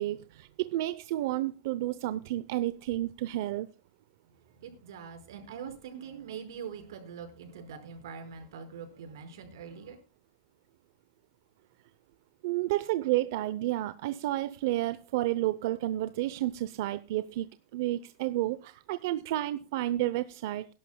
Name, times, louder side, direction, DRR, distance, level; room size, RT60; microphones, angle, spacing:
voice 1, 0.0-3.7 12.4-17.5 17.7-20.7, right 15 dB, 50° right, 0.6 m, -31 dB
voice 2, 4.3-10.0, right 6 dB, 85° right, 5.0 m, -43 dB
22.0 x 11.5 x 2.2 m
supercardioid pair, 180°, 2 cm